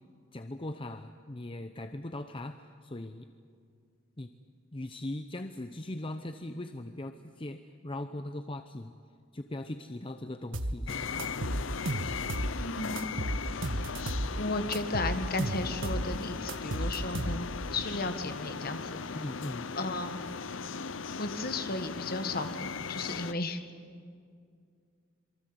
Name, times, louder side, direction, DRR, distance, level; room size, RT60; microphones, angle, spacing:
voice 1, 0.3-3.3 4.2-4.3 4.7-8.9 9.3-11.1 19.1-19.7, left 1 dB, 25° left, 8 dB, 0.7 m, -39 dB
sound 1, 10.5-10.8 11.2-12.6 13.0-14.3 14.7-16.1 16.5-17.7, right 1 dB, 70° right, 1.4 m, -33 dB
sound 2, 10.9-23.3, left 5 dB, 70° left, 0.8 m, -38 dB
voice 2, 12.6-13.1 14.3-19.0 19.7-20.2 21.2-23.6, left 2 dB, 45° left, 8 dB, 1.8 m, -34 dB
27.0 x 23.5 x 8.0 m, 2.2 s
head